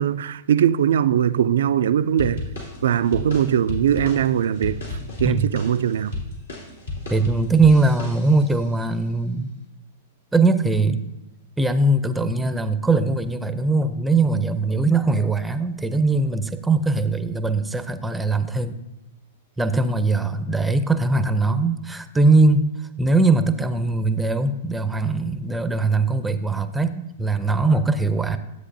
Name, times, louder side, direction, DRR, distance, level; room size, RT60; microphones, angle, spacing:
voice 1, 0.0-2.4 2.8-4.8 5.2-6.1, right 9 dB, 70° right, 0.3 m, -20 dB
sound 1, 2.2-8.6, left 3 dB, 80° left, 2.7 m, -33 dB
voice 2, 7.1-9.5 10.3-11.0 11.6-18.8 19.6-22.7 23.0-28.4, right 3 dB, 5° right, 0.5 m, -20 dB
12.0 x 8.0 x 2.7 m
hypercardioid pair, 105°, 0 cm